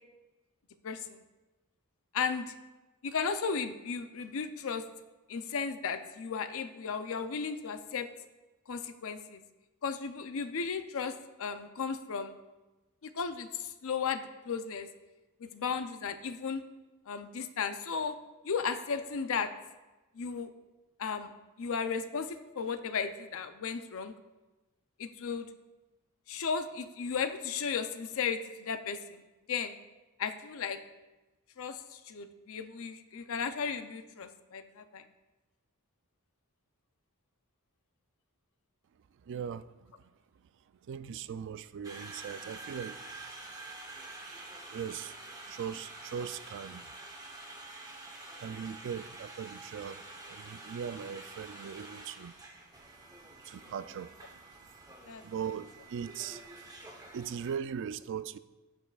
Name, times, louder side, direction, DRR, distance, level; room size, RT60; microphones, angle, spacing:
voice 1, 0.8-1.2 2.1-2.5 3.0-4.9 5.3-8.1 8.7-9.4 9.8-12.3 13.0-14.9 15.4-16.6 17.1-18.2 18.4-19.5 20.1-20.5 21.0-21.3 21.6-24.1 25.0-25.5 26.3-29.2 29.5-29.8 30.2-30.8 31.6-35.0 55.1-55.2, left 6 dB, 70° left, 10 dB, 0.6 m, -35 dB
voice 2, 39.3-39.7 40.9-43.0 44.3-45.1 45.5-46.9 48.4-52.3 53.5-54.1 55.2-56.4 57.1-58.4, right 7 dB, 55° right, 14 dB, 0.3 m, -39 dB
Conversation, 41.8-57.5, right 2 dB, 15° right, 1.0 m, -48 dB
16.0 x 5.5 x 2.4 m, 1.1 s
head